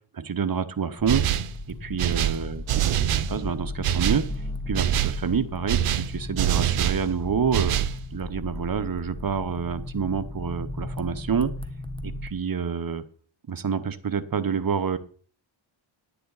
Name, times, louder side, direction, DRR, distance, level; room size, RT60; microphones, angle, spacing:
voice 1, 0.1-1.2 1.8-4.3 4.7-7.7 8.1-11.5 12.0-13.0 13.5-15.0, right 6 dB, 45° right, 10 dB, 1.0 m, -28 dB
sound 1, 1.0-12.3, left 1 dB, 10° left, 1.1 m, -35 dB
sound 2, 1.1-1.6 2.0-3.4 3.8-4.3 4.7-5.2 5.7-7.0 7.5-8.0, right 11 dB, 90° right, 0.7 m, -24 dB
10.0 x 9.7 x 4.0 m, 0.44 s
cardioid pair, 70°, 49 cm